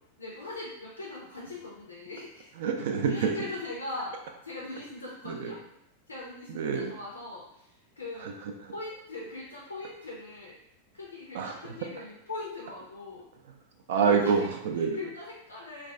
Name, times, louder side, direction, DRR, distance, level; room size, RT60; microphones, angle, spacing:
voice 1, 0.2-2.5 3.1-4.2 4.4-5.6 6.1-8.3 8.7-10.6 10.9-13.2 14.0-14.3 14.9-15.9, left 2 dB, 75° left, -4 dB, 0.5 m, -40 dB
voice 2, 2.6-3.3 5.3-5.5 6.5-6.9 8.2-8.3 8.6-8.7 11.3-11.7 13.9-15.0, right 6 dB, 55° right, 3 dB, 0.3 m, -27 dB
2.3 x 2.2 x 2.5 m, 0.82 s
figure-of-eight pair, 90°, 0 cm